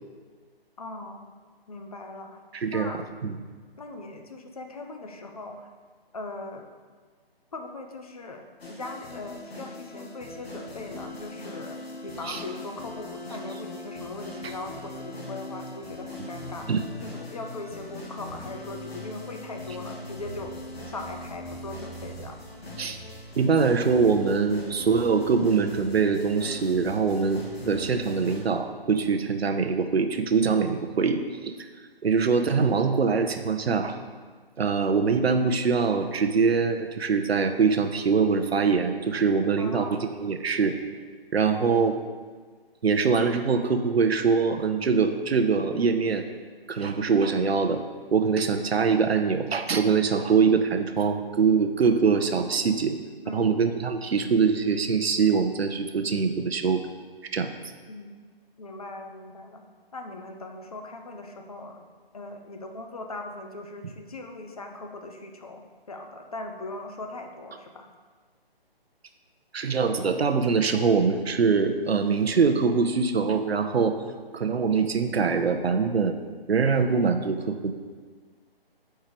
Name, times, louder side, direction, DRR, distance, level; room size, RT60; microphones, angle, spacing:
voice 1, 0.8-1.3 1.7-2.4 2.7-3.0 3.8-5.7 6.1-6.7 7.5-16.7 17.0-20.6 20.9-22.4 39.6-40.1 53.2-53.7 57.9-58.1 58.6-59.7 59.9-67.9, left 2 dB, 40° left, 4 dB, 0.5 m, -39 dB
voice 2, 2.5-2.9 3.2-3.3 12.3-12.4 16.7-16.8 22.8-23.0 23.4-31.5 32.0-34.0 34.6-40.8 41.3-42.0 42.8-46.2 46.7-47.8 48.1-53.0 53.3-56.8 57.3-57.5 69.5-74.0 74.3-76.2 76.5-77.7, right 5 dB, 80° right, 7 dB, 0.6 m, -23 dB
sound 1, 8.6-28.4, left 1 dB, 75° left, 1.6 m, -40 dB
4.5 x 4.5 x 5.1 m, 1.5 s
figure-of-eight pair, 155°, 31 cm